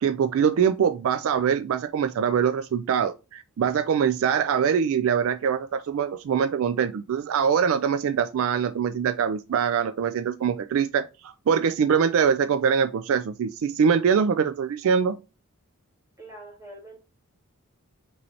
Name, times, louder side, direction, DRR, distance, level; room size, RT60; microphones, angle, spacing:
voice 1, 0.0-15.2, right 7 dB, 70° right, 0.3 m, -23 dB
voice 2, 16.2-17.0, right 1 dB, 15° right, 1.7 m, -44 dB
5.3 x 3.1 x 2.8 m
head